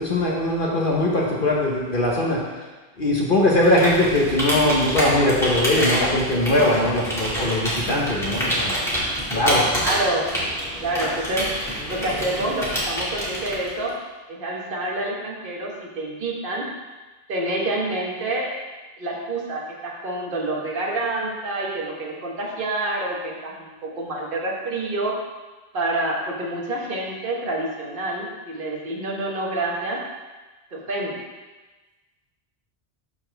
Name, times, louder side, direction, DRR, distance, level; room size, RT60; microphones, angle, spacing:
voice 1, 0.0-2.4 3.0-8.8 9.3-9.7, left 1 dB, 50° left, -3 dB, 1.2 m, -21 dB
Computer keyboard, 3.6-13.9, equal, ahead, 2.0 m, -27 dB
voice 2, 9.8-10.2 10.8-11.5 11.9-13.9 14.3-16.6 17.3-18.5 19.0-25.1 25.7-30.0 30.7-31.1, right 2 dB, 50° right, -2 dB, 1.4 m, -27 dB
12.0 x 4.3 x 3.4 m, 1.2 s
omnidirectional pair, 1.2 m